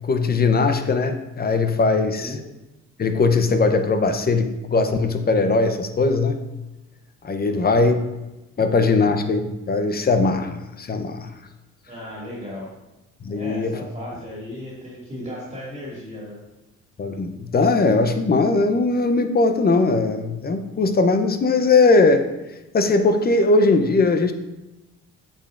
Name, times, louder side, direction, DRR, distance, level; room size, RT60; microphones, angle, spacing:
voice 1, 0.1-2.3 3.0-6.4 7.2-8.0 8.6-11.3 13.2-13.7 17.0-22.3 22.7-24.3, left 3 dB, 30° left, 8 dB, 0.6 m, -19 dB
voice 2, 2.0-2.4 7.4-7.9 11.9-12.7 13.3-16.4, left 1 dB, 25° right, -6 dB, 2.1 m, -36 dB
8.4 x 4.9 x 2.5 m, 1.0 s
cardioid pair, 90°, 30 cm